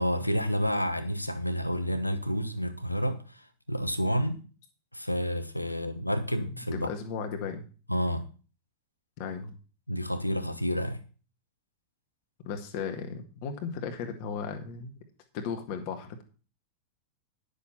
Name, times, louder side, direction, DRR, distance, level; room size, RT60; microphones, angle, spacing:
voice 1, 0.0-4.4 4.9-6.9 7.9-8.3 9.9-11.0, equal, 90° left, 1.0 m, -29 dB
voice 2, 6.4-7.7 9.2-9.6 12.4-14.9 15.3-16.2, left 6 dB, 45° left, 1.8 m, -36 dB
10.5 x 6.8 x 5.6 m
figure-of-eight pair, 90°, 0 cm